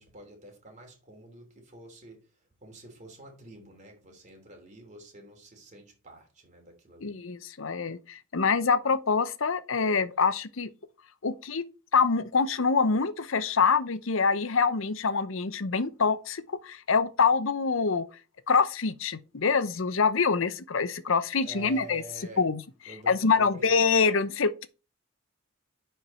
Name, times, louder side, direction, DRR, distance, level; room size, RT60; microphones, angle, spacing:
voice 1, 0.0-2.2 2.6-7.2 21.4-22.4 22.9-23.7, right 2 dB, 35° right, 3.0 m, -48 dB
voice 2, 7.0-10.7 11.2-11.6 11.9-18.1 18.5-22.0 22.4-22.6 22.9-24.7, left 5 dB, 70° left, 0.8 m, -25 dB
10.0 x 4.6 x 4.4 m
head